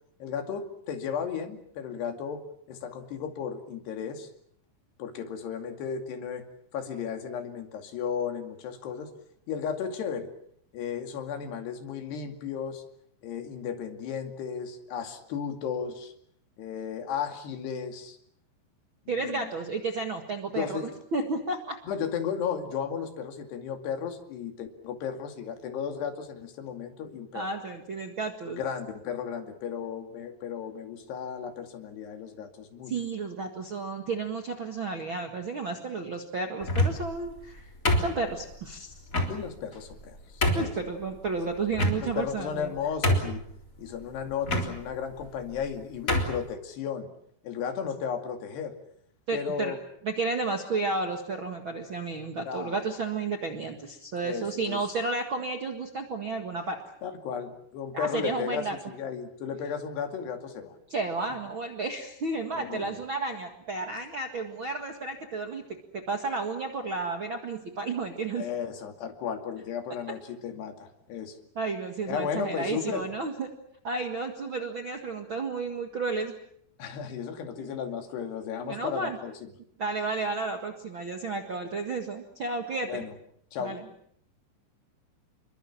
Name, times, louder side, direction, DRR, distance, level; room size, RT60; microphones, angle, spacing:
voice 1, 0.2-4.3 5.0-6.5 6.7-9.1 9.5-10.3 10.7-12.8 13.2-16.1 16.6-18.2 19.1-19.5 20.5-20.9 21.9-27.5 28.6-32.9 39.3-40.7 42.0-43.4 43.8-47.1 47.4-48.8 49.3-49.8 52.5-52.8 54.2-54.8 57.0-60.8 62.5-63.0 68.4-71.4 72.1-73.0 76.8-79.5 82.9-83.1 83.5-83.8, left 7 dB, 65° left, 5 dB, 4.4 m, -34 dB
voice 2, 19.1-21.8 27.3-28.6 32.8-37.7 38.0-38.9 40.5-42.7 49.3-49.7 50.0-56.8 57.9-58.8 60.9-65.6 65.9-68.4 71.5-73.5 73.8-76.3 77.6-77.7 78.6-79.2 79.8-83.0 83.6-83.8, right 3 dB, 70° right, 4 dB, 1.2 m, -32 dB
sound 1, 36.6-37.1 37.9-38.5 39.1-39.3 39.9-40.0 40.4-40.8 41.7-42.3 42.7-42.8 43.0-43.5 44.4-44.7 45.5-45.7 46.1-46.4, equal, 20° left, 3.3 m, -25 dB
29.0 x 23.0 x 7.3 m, 0.69 s
omnidirectional pair, 5.5 m